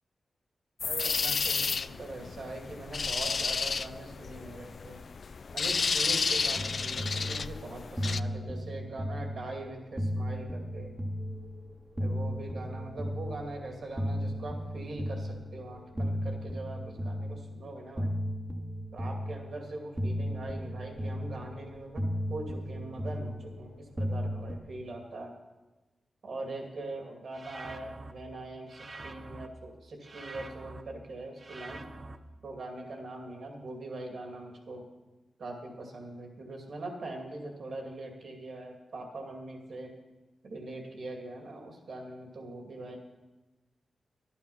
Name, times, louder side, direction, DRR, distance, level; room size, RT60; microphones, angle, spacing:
sound 1, 0.8-8.2, left 5 dB, 60° left, 0.3 m, -31 dB
voice 1, 0.8-5.0 5.5-10.9 12.0-18.1 18.9-25.3 26.2-31.9 32.4-34.9 35.4-39.9 40.4-43.0, right 2 dB, 70° right, 2 dB, 2.5 m, -42 dB
sound 2, 6.5-24.6, equal, 20° right, 1.4 m, -35 dB
sound 3, 27.3-28.1 28.7-29.5 30.0-30.8 31.4-32.2, right 2 dB, 45° right, 0.9 m, -45 dB
11.5 x 11.5 x 5.6 m, 1.1 s
cardioid pair, 60°, 0 cm